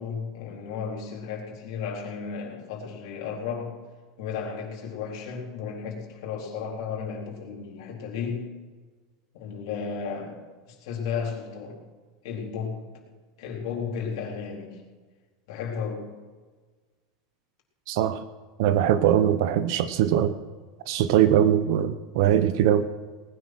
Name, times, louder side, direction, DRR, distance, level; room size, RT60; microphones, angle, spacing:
voice 1, 0.0-3.8 4.2-8.6 9.3-11.8 12.2-12.9 13.4-14.8 15.5-16.1, left 6 dB, 50° left, -1 dB, 4.0 m, -34 dB
voice 2, 17.9-18.2 18.6-20.4 20.9-22.9, right 10 dB, 50° right, 13 dB, 0.8 m, -21 dB
19.5 x 9.6 x 6.2 m, 1.4 s
supercardioid pair, 180°, 3 cm